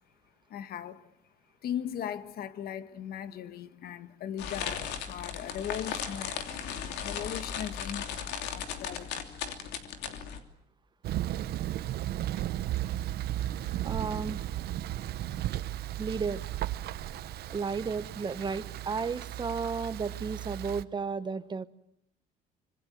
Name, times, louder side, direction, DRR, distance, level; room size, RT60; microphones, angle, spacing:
voice 1, 0.5-1.1 1.6-6.4 7.0-9.2, left 9 dB, 65° left, 1.7 m, -38 dB
sound 1, 4.4-10.4, left 7 dB, 85° left, 3.1 m, -37 dB
Thunder, 11.0-20.8, right 13 dB, 70° right, 1.1 m, -35 dB
voice 2, 13.8-14.4 16.0-16.4 17.5-21.6, right 5 dB, 25° right, 1.2 m, -33 dB
25.5 x 25.5 x 7.9 m
cardioid pair, 110°, 17 cm